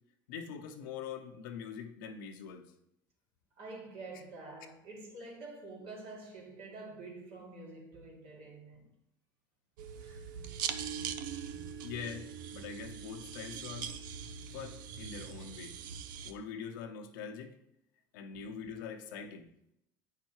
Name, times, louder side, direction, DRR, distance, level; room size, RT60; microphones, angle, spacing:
voice 1, 0.3-2.7 11.8-13.9 14.5-15.8 16.2-17.6 18.1-19.5, left 7 dB, 80° left, 0.8 m, -43 dB
voice 2, 3.6-8.9 10.0-10.3 18.3-18.4, right 3 dB, 60° right, 2.3 m, -48 dB
sound 1, 9.8-16.3, right 7 dB, 85° right, 0.5 m, -41 dB
8.4 x 5.9 x 3.0 m
hypercardioid pair, 85°, 10 cm